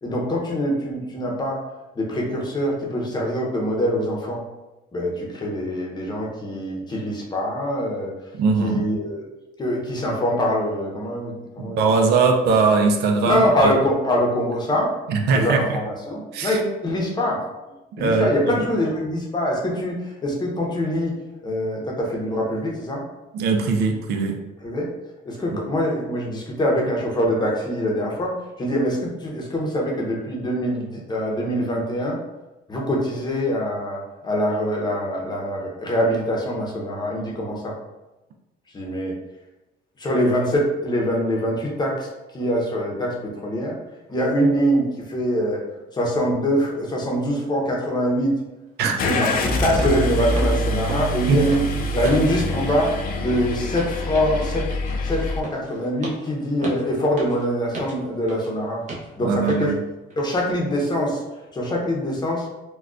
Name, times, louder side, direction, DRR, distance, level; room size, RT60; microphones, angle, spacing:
voice 1, 0.0-1.6 2.0-4.4 4.9-8.1 8.6-9.2 9.6-11.8 12.0-12.2 13.2-14.9 15.3-17.4 18.0-21.1 21.4-23.0 24.6-24.9 25.2-32.2 32.7-37.8 38.7-39.2 40.0-43.8 44.1-45.6 45.9-48.4 49.0-51.6 51.9-54.7 55.0-58.9 59.2-59.7 60.2-61.2 61.5-62.5, equal, 25° left, -2 dB, 0.7 m, -24 dB
voice 2, 8.3-8.8 11.6-13.7 15.1-15.6 16.3-16.6 18.0-18.3 23.3-24.4 48.8-49.0 51.3-51.4 59.2-59.8, right 4 dB, 75° right, 4 dB, 0.5 m, -20 dB
sound 1, 48.2-48.3 48.8-49.0 49.3-49.5 49.8-50.0 50.3-52.3 52.6-52.9 53.2-58.5 58.9-59.1 59.5-59.7 60.1-60.2, right 2 dB, 45° right, 0.8 m, -36 dB
Car / Engine starting, 49.0-55.4, left 2 dB, 60° left, 0.4 m, -25 dB
3.6 x 2.2 x 2.4 m, 1.0 s
cardioid pair, 110°, 17 cm